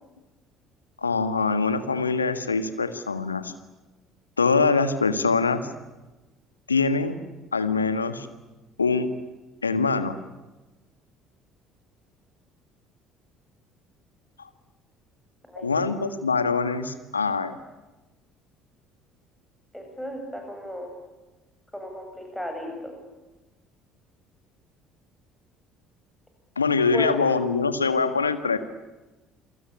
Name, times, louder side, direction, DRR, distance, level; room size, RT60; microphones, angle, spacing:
voice 1, 1.0-3.5 4.4-5.7 6.7-7.1 7.5-8.3 8.8-9.1 9.6-10.2 15.6-17.6 26.6-28.6, left 4 dB, 85° left, 11 dB, 1.7 m, -23 dB
voice 2, 15.5-15.8 19.7-20.9 21.7-22.9 26.9-27.2, left 1 dB, 5° left, 2 dB, 7.8 m, -34 dB
29.0 x 23.5 x 8.7 m, 1.1 s
figure-of-eight pair, 55°, 0 cm